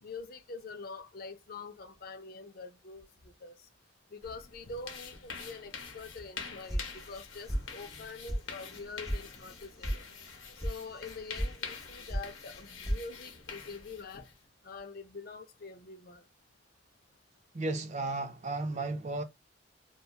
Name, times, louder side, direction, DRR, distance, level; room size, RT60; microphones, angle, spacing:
voice 1, 0.0-3.1 3.4-3.5 4.1-10.0 10.6-14.3 14.6-16.2, left 4 dB, 50° left, 0.4 m, -45 dB
sound 1, 4.2-14.4, left 5 dB, 75° left, 0.8 m, -46 dB
sound 2, 6.7-7.2 7.5-8.0 8.3-8.4 8.7-9.2 9.5-10.0 10.2-10.7 11.0-11.5 11.8-12.3 12.5-13.0, equal, ahead, 0.7 m, -33 dB
voice 2, 17.5-19.2, right 2 dB, 35° right, 0.4 m, -34 dB
2.8 x 2.2 x 2.3 m
head